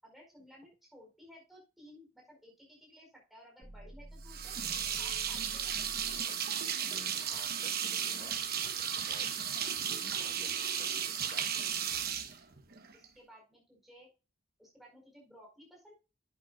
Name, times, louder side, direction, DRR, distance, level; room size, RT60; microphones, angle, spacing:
voice 1, 0.0-4.6 4.9-6.3 12.9-14.1 14.6-15.9, equal, ahead, -2 dB, 4.7 m, -57 dB
sound 1, 3.6-6.4, right 1 dB, 20° right, 1.0 m, -50 dB
sound 2, 4.3-13.1, right 8 dB, 45° right, 1.1 m, -35 dB
voice 2, 6.2-8.4 8.8-11.5, left 2 dB, 30° left, 5 dB, 1.5 m, -54 dB
11.0 x 9.0 x 2.4 m, 0.31 s
head